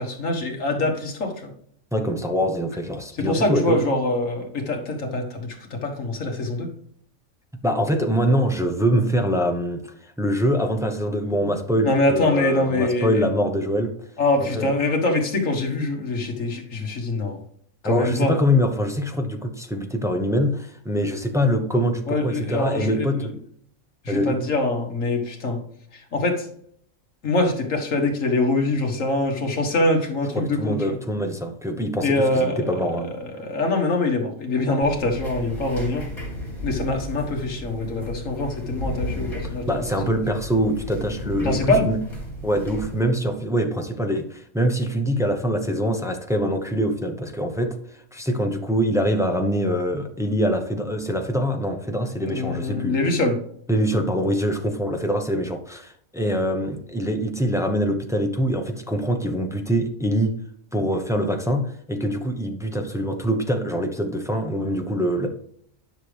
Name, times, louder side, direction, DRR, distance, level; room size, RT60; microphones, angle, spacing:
voice 1, 0.0-1.5 3.2-6.7 11.4-11.5 11.8-13.2 14.2-17.4 17.8-18.4 22.1-23.3 24.0-25.6 25.9-26.5 27.2-31.0 32.0-32.8 33.3-36.1 36.6-40.2 41.4-41.9 52.2-53.4, left 2 dB, 65° left, 2 dB, 1.8 m, -24 dB
voice 2, 1.9-3.8 7.6-13.9 14.4-14.7 17.8-23.3 24.1-24.4 30.3-33.2 39.7-42.0 42.4-47.8 48.1-52.9 53.7-60.4 60.7-65.3, equal, 5° right, 4 dB, 0.7 m, -24 dB
sound 1, 34.8-43.0, equal, 20° left, 3.4 m, -34 dB
10.0 x 6.2 x 3.3 m, 0.65 s
omnidirectional pair, 1.4 m